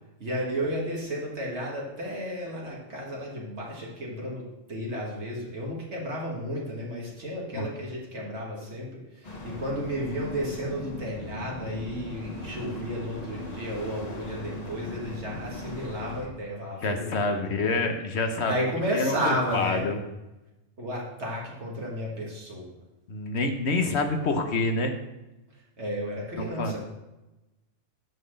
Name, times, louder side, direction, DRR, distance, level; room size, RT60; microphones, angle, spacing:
voice 1, 0.2-17.8 18.4-19.9 20.8-22.8 25.8-26.8, equal, 65° right, -3 dB, 1.8 m, -33 dB
sound 1, 9.2-16.3, left 1 dB, 35° left, 1.2 m, -39 dB
voice 2, 16.8-18.6 18.9-20.0 23.1-24.9 26.6-26.8, left 3 dB, 65° left, 5 dB, 1.1 m, -27 dB
9.2 x 4.1 x 6.4 m, 1.0 s
omnidirectional pair, 1.3 m